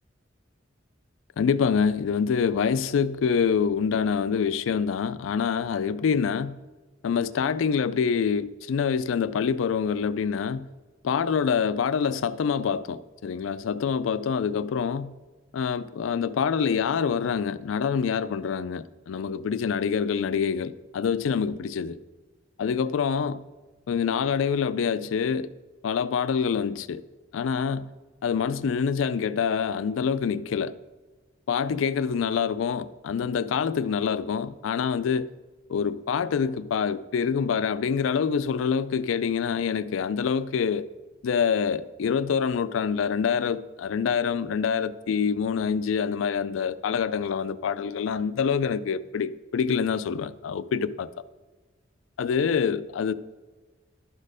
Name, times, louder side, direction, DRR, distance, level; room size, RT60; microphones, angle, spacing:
voice 1, 1.4-6.6 7.0-10.7 11.0-15.1 15.5-22.0 22.6-23.4 23.9-25.5 25.8-27.0 27.3-27.9 28.2-30.7 31.5-35.3 35.7-40.9 41.2-51.1 52.2-53.1, left 6 dB, 80° left, 0.4 m, -26 dB
11.5 x 4.4 x 4.9 m
head